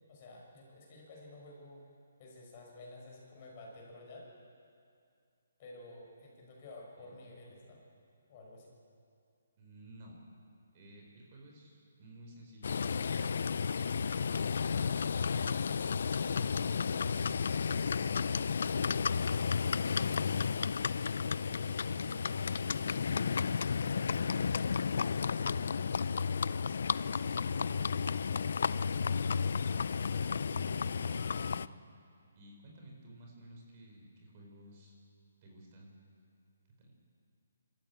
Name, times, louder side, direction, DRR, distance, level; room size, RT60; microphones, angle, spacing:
voice 1, 0.1-1.8 2.2-4.3 5.6-7.8 8.3-8.7 21.3-21.7, left 2 dB, 35° left, -2 dB, 5.7 m, -51 dB
voice 2, 9.6-10.2 10.7-15.6 16.2-20.6 21.3-26.4 27.0-31.8 32.3-34.9 35.4-36.0 36.8-36.9, right 1 dB, 35° right, 0 dB, 4.6 m, -54 dB
Livestock farm animals working animals, 12.6-31.7, left 6 dB, 60° left, 0.5 m, -32 dB
25.0 x 14.0 x 8.6 m, 2.4 s
hypercardioid pair, 160°, 0 cm